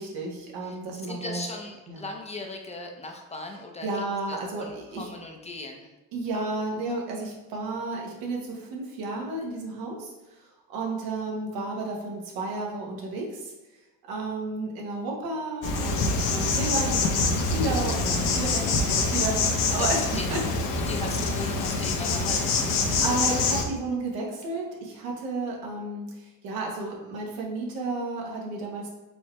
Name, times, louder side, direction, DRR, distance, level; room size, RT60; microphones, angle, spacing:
voice 1, 0.0-1.4 1.9-2.1 3.8-5.1 6.1-13.5 14.1-20.0 20.3-20.4 20.9-21.0 22.8-28.9, right 2 dB, 85° right, -1 dB, 1.2 m, -32 dB
voice 2, 1.1-5.9 19.8-20.3 20.9-22.7, left 2 dB, 20° left, 2 dB, 0.5 m, -38 dB
Insect, 15.6-23.6, left 3 dB, 65° left, 0.7 m, -25 dB
4.6 x 3.2 x 3.1 m, 1.1 s
cardioid pair, 105°, 35 cm